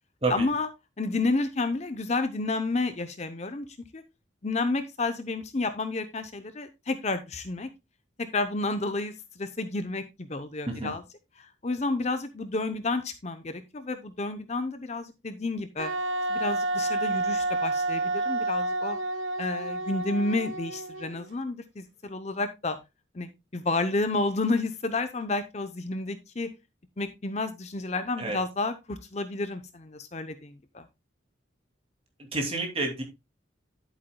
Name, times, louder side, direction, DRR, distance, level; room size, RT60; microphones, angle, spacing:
voice 1, 0.3-0.7 1.0-3.7 3.9-4.0 4.4-7.7 8.3-9.1 9.4-11.0 11.6-15.9 16.3-19.0 19.4-22.8 23.1-26.5 27.0-30.8, left 3 dB, 35° left, 10 dB, 0.7 m, -30 dB
Wind instrument woodwind instrument, 15.8-21.3, right 2 dB, 85° right, 1.0 m, -29 dB
voice 2, 32.3-33.0, right 3 dB, 30° right, 2 dB, 2.6 m, -29 dB
10.5 x 8.3 x 2.2 m, 0.23 s
head